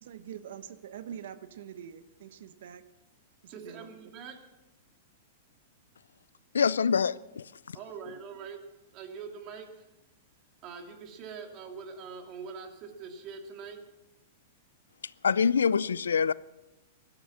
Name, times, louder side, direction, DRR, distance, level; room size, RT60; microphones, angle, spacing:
voice 1, 0.0-2.8 3.4-3.9 8.0-8.2, right 9 dB, 70° right, 1.2 m, -45 dB
voice 2, 3.5-4.4 7.7-8.6 8.9-9.9 10.6-13.8, right 5 dB, 40° right, 2.8 m, -43 dB
voice 3, 6.5-7.5 15.2-16.3, left 6 dB, 90° left, 0.4 m, -25 dB
17.0 x 12.5 x 6.0 m
hypercardioid pair, 120°, 0 cm